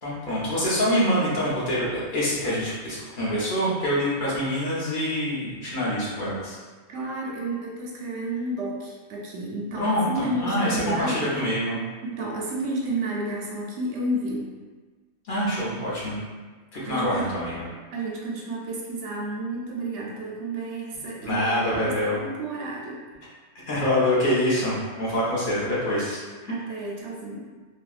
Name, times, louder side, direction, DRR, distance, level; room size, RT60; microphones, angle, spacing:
voice 1, 0.0-6.6 9.8-11.8 15.3-16.2 16.7-17.6 21.2-22.2 23.7-26.5, equal, 45° left, -8 dB, 1.0 m, -25 dB
voice 2, 6.9-11.3 12.1-14.5 16.8-17.3 17.9-23.0 26.5-27.5, right 2 dB, 65° right, -2 dB, 0.8 m, -31 dB
3.4 x 2.2 x 2.4 m, 1.4 s
omnidirectional pair, 1.4 m